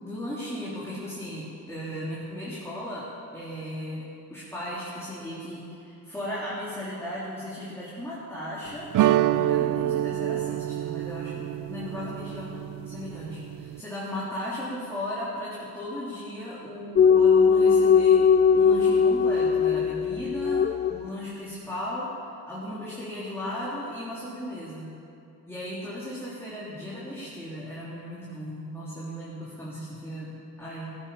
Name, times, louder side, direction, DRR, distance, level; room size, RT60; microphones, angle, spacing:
voice 1, 0.0-4.0 4.3-18.2 18.5-22.1 22.5-24.9 25.5-31.0, left 1 dB, 5° left, -8 dB, 3.8 m, -36 dB
sound 1, 8.9-13.8, right 13 dB, 55° right, 0.5 m, -27 dB
sound 2, 17.0-21.1, left 6 dB, 30° left, 0.4 m, -19 dB
15.5 x 9.3 x 7.1 m, 2.7 s
cardioid pair, 75°, 39 cm